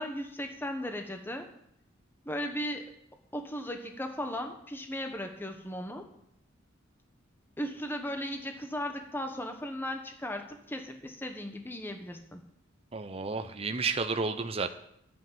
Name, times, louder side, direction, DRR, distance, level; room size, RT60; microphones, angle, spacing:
voice 1, 0.0-1.5 2.2-2.9 3.3-6.1 7.6-12.4, equal, 10° left, 5 dB, 1.2 m, -36 dB
voice 2, 12.9-14.7, right 4 dB, 30° right, 8 dB, 0.7 m, -31 dB
11.0 x 8.2 x 9.4 m, 0.76 s
head